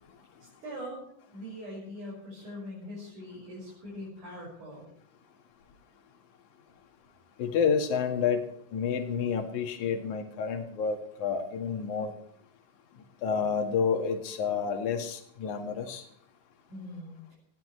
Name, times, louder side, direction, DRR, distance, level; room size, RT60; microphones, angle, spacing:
voice 1, 0.4-1.0 1.3-4.9 16.7-17.4, equal, 60° right, -5 dB, 7.4 m, -42 dB
voice 2, 7.4-12.1 13.2-16.0, left 6 dB, 60° left, 4 dB, 3.2 m, -29 dB
20.5 x 16.0 x 3.3 m, 0.71 s
omnidirectional pair, 4.1 m